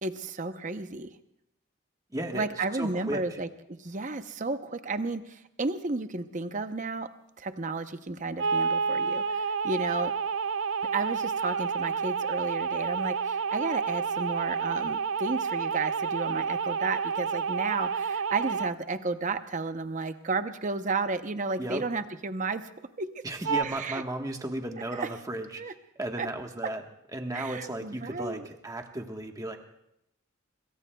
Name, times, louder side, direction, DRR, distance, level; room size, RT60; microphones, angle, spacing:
voice 1, 0.0-1.1 2.3-7.1 7.4-10.1 10.9-22.7 23.0-23.1 23.6-24.0 25.0-25.1 25.6-25.7 26.2-26.3 27.3-28.5, right 3 dB, 40° right, 9 dB, 0.8 m, -32 dB
voice 2, 2.1-3.2 21.6-21.8 23.2-26.8 27.1-29.6, right 1 dB, 20° right, 3 dB, 1.3 m, -35 dB
sound 1, 8.4-18.7 23.4-23.6, right 5 dB, 80° right, 0.5 m, -29 dB
26.0 x 22.0 x 2.3 m, 0.83 s
head